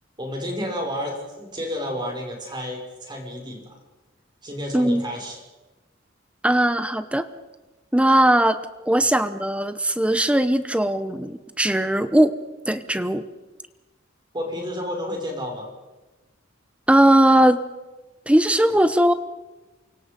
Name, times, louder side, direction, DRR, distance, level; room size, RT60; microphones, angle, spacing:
voice 1, 0.2-3.7 4.4-5.4 14.3-15.7, equal, 25° right, 1 dB, 6.0 m, -31 dB
voice 2, 6.4-7.3 7.9-12.3 12.7-13.2 16.9-17.6 18.3-19.1, right 1 dB, 5° right, 11 dB, 0.9 m, -19 dB
28.5 x 25.0 x 5.4 m, 1.1 s
head